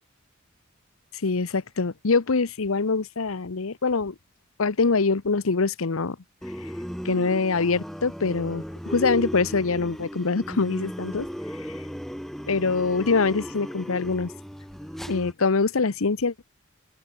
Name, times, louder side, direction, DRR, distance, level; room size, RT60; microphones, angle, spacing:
voice 1, 1.2-4.1 4.6-6.2 7.0-11.3 12.5-14.3 15.1-16.4, left 4 dB, 80° left, 0.9 m, -24 dB
sound 1, 6.4-15.3, equal, ahead, 3.8 m, -36 dB
open air
head